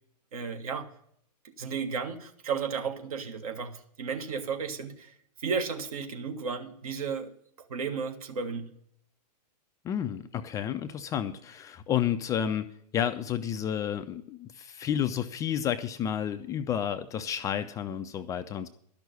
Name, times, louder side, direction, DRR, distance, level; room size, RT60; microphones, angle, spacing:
voice 1, 0.3-0.9 1.6-7.3 7.6-8.7, right 5 dB, 60° right, 6 dB, 1.5 m, -34 dB
voice 2, 9.8-18.7, left 9 dB, 15° left, 8 dB, 0.4 m, -31 dB
12.0 x 6.2 x 8.1 m, 0.69 s
figure-of-eight pair, 115°, 21 cm